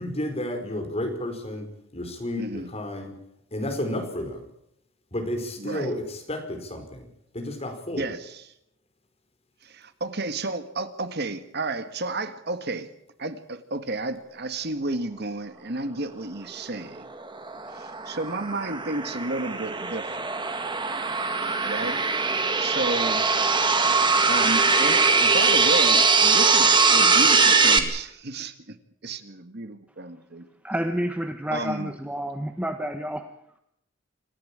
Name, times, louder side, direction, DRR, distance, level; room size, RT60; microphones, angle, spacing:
voice 1, 0.0-3.1 3.5-4.4 5.1-7.1 7.3-8.1, left 1 dB, 30° left, 4 dB, 5.1 m, -31 dB
voice 2, 2.4-2.7 5.6-5.9 8.0-8.4 9.6-12.9 13.2-17.1 17.7-20.3 21.4-22.0 22.6-23.9 24.3-28.8 29.0-30.5 31.5-31.9, right 2 dB, 55° right, 10 dB, 1.7 m, -32 dB
sound 1, 17.0-27.8, right 4 dB, 25° right, 2.1 m, -21 dB
voice 3, 30.6-33.3, equal, 5° right, 7 dB, 1.2 m, -29 dB
26.5 x 15.0 x 8.8 m, 0.78 s
head